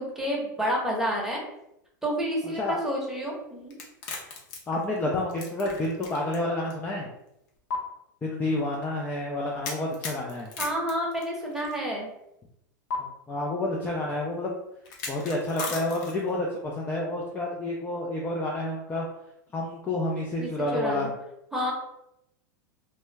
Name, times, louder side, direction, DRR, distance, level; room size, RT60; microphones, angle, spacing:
voice 1, 0.0-1.4 2.0-3.7 10.6-12.1 20.4-21.1 21.5-21.7, equal, 5° right, -3 dB, 0.9 m, -29 dB
voice 2, 2.4-2.8 4.7-7.1 8.2-10.5 13.0-14.5 15.1-19.1 19.5-21.1, left 1 dB, 15° left, -2 dB, 0.4 m, -29 dB
sound 1, 3.7-6.4 6.7-6.8 7.7-7.8 9.6-11.8 12.9-13.0 14.8-16.3, left 3 dB, 60° left, 0.7 m, -36 dB
2.1 x 2.1 x 3.3 m, 0.82 s
hypercardioid pair, 105°, 10 cm